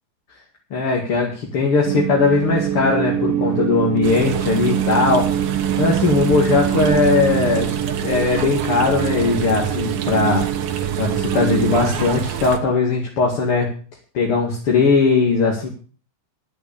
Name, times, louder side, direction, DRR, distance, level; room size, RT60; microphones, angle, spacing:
voice 1, 0.7-5.5 5.8-7.8 8.0-10.4 11.0-13.7 14.1-15.7, left 4 dB, 40° left, -2 dB, 2.4 m, -19 dB
sound 1, 1.9-11.8, right 11 dB, 90° right, 3.3 m, -24 dB
sound 2, 4.0-12.6, right 8 dB, 65° right, 2.7 m, -28 dB
11.0 x 9.0 x 6.9 m, 0.38 s
omnidirectional pair, 5.1 m